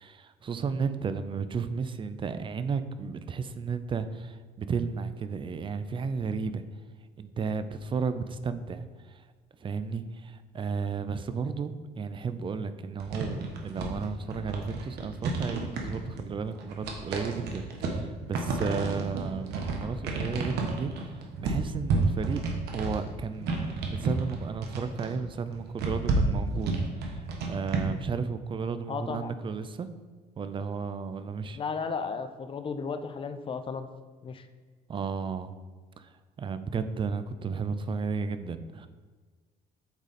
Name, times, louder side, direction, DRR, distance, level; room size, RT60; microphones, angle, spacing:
voice 1, 0.0-6.6 7.2-9.2 9.6-22.4 22.7-26.7 27.1-29.9 30.4-31.6 34.9-35.5 36.0-36.1 36.4-38.9, right 5 dB, 30° right, 11 dB, 0.4 m, -33 dB
sound 1, 13.0-27.8, right 3 dB, 75° right, 1.2 m, -31 dB
voice 2, 28.9-29.3 31.5-33.9 34.2-34.5, left 5 dB, 30° left, 9 dB, 0.5 m, -34 dB
8.1 x 3.9 x 4.2 m, 1.4 s
cardioid pair, 110°, 17 cm